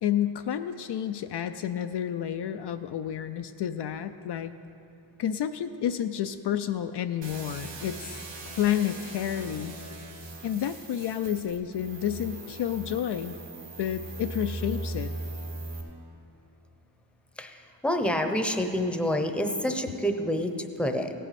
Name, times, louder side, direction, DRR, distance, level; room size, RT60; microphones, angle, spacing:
voice 1, 0.0-4.5 5.2-8.3 8.6-9.7 10.4-13.4 13.8-15.1, left 10 dB, 60° left, 8 dB, 0.5 m, -30 dB
sound 1, 7.2-15.8, right 2 dB, 75° right, 2.5 m, -39 dB
voice 2, 17.4-21.1, equal, ahead, 6 dB, 0.8 m, -28 dB
16.5 x 9.1 x 4.2 m, 2.7 s
cardioid pair, 80°, 46 cm